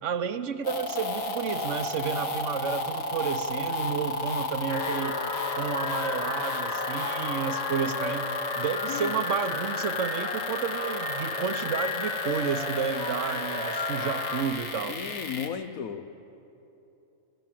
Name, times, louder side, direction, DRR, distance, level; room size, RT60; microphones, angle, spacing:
voice 1, 0.0-5.2 5.6-8.3 8.6-15.0, right 6 dB, 65° right, 10 dB, 1.2 m, -31 dB
sound 1, 0.6-15.5, left 2 dB, 70° left, 2.0 m, -34 dB
sound 2, 4.7-14.4, left 3 dB, 55° left, 2.1 m, -32 dB
voice 2, 14.9-16.0, left 8 dB, 90° left, 11 dB, 1.3 m, -34 dB
24.0 x 15.0 x 7.6 m, 3.0 s
omnidirectional pair, 1.4 m